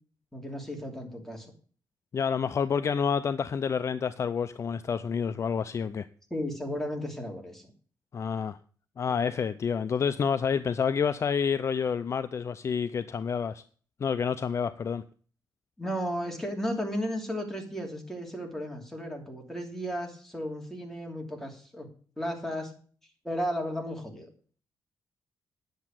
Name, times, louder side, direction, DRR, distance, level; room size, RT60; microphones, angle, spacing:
voice 1, 0.3-1.5 6.3-7.6 9.1-9.5 15.8-21.9 22.2-22.7 23.2-24.3, equal, 5° left, 1 dB, 2.8 m, -34 dB
voice 2, 2.1-6.1 8.1-8.6 9.0-13.6 14.0-15.0, left 6 dB, 40° left, 12 dB, 0.5 m, -28 dB
10.5 x 7.2 x 7.5 m, 0.43 s
cardioid pair, 140°, 8 cm